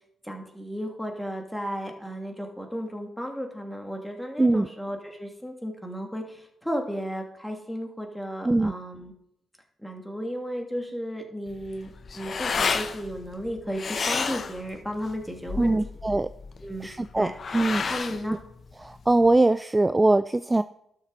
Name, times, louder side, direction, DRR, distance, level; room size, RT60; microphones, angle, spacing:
voice 1, 0.2-9.1 9.8-15.8 16.6-16.9 17.2-17.3 17.9-18.4, equal, 5° left, 2 dB, 2.5 m, -34 dB
sound 1, 11.5-19.4, left 5 dB, 50° left, 0.8 m, -32 dB
voice 2, 15.6-16.3 16.8-17.3 17.5-17.8 18.8-20.6, right 2 dB, 20° right, 13 dB, 0.4 m, -22 dB
12.0 x 6.8 x 4.1 m, 0.75 s
supercardioid pair, 50°, 0 cm